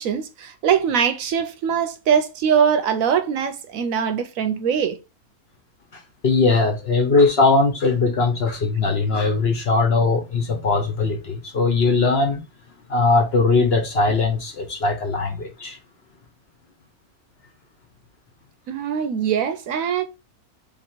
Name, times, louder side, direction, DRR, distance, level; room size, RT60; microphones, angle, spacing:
voice 1, 0.0-5.0 18.7-20.0, right 7 dB, 70° right, 1.0 m, -22 dB
voice 2, 6.2-12.4 12.9-15.8, left 3 dB, 50° left, 1.0 m, -20 dB
3.7 x 3.0 x 4.3 m
omnidirectional pair, 1.6 m